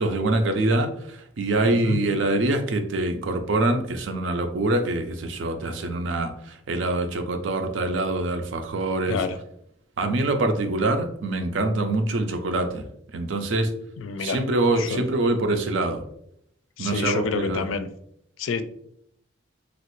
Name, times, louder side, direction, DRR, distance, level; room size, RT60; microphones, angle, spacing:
voice 1, 0.0-9.2 10.0-12.8 13.1-13.7 14.2-16.0 16.8-17.7, right 2 dB, 70° right, 7 dB, 0.5 m, -24 dB
voice 2, 1.6-2.0 9.1-9.4 14.0-14.4 14.8-15.0 16.8-17.9 18.4-18.6, left 5 dB, 80° left, 10 dB, 0.4 m, -28 dB
3.1 x 2.4 x 3.0 m, 0.72 s
head